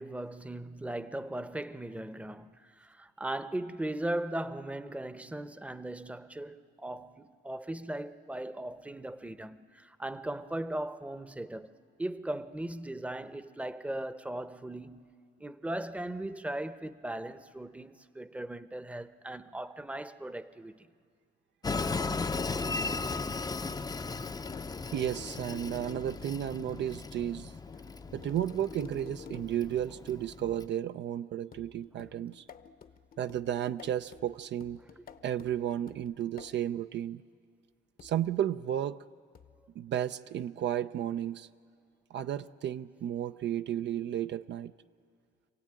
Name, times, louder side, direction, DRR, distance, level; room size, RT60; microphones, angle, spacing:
voice 1, 0.0-11.7 12.0-15.1 15.4-20.9 24.1-24.2, right 1 dB, 5° right, 0.8 m, -38 dB
Train, 21.6-30.7, left 4 dB, 20° left, 0.6 m, -36 dB
sound 1, 24.5-26.2 27.7-29.7 31.5-36.7 38.0-38.3 39.3-39.7, left 7 dB, 45° left, 0.9 m, -51 dB
voice 2, 24.9-27.5 28.1-32.4 33.2-34.8 35.2-37.2 38.0-39.0 39.8-41.5 42.1-44.7, right 10 dB, 65° right, 0.5 m, -33 dB
27.0 x 16.5 x 8.9 m
cardioid pair, 90°, 20 cm